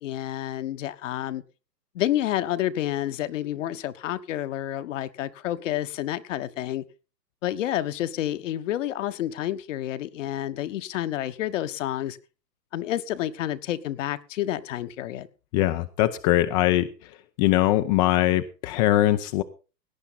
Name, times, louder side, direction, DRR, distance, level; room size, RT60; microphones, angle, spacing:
voice 1, 0.0-1.4 1.9-6.8 7.4-12.2 12.7-15.3, left 13 dB, 50° left, 1.4 m, -29 dB
voice 2, 15.5-16.9 17.4-19.4, left 15 dB, 25° left, 0.7 m, -21 dB
18.0 x 10.0 x 4.2 m
hypercardioid pair, 120°, 50 cm